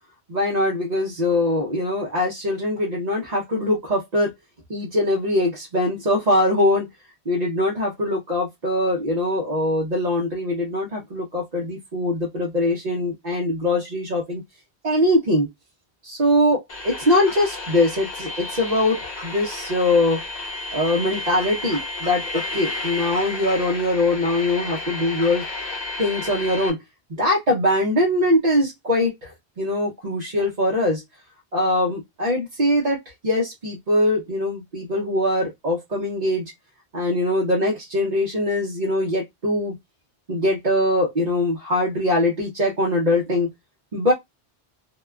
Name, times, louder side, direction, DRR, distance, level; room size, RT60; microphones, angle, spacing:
voice 1, 0.3-4.3 4.7-6.9 7.3-14.4 14.8-15.5 16.0-20.2 20.7-25.4 26.0-26.8 27.2-31.0 31.5-36.4 36.9-39.7 40.3-43.5 43.9-44.1, left 1 dB, 45° right, 0.8 m, -22 dB
sound 1, 16.7-26.7, left 2 dB, 45° left, 0.9 m, -32 dB
2.8 x 2.3 x 2.2 m
omnidirectional pair, 1.1 m